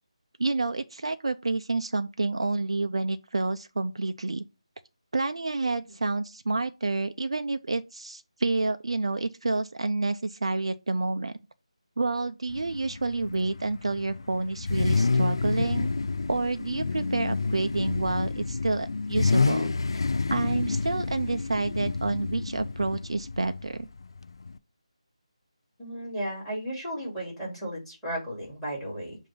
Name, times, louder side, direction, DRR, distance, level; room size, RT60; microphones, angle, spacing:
voice 1, 0.4-4.4 5.1-11.3 12.0-15.9 16.3-19.7 20.3-23.9, right 3 dB, 55° right, 0.5 m, -29 dB
Car / Idling / Accelerating revving vroom, 12.5-24.6, left 4 dB, 50° left, 0.4 m, -29 dB
voice 2, 25.8-29.2, right 1 dB, ahead, 3.3 m, -34 dB
7.5 x 2.7 x 5.7 m
figure-of-eight pair, 155°, 3 cm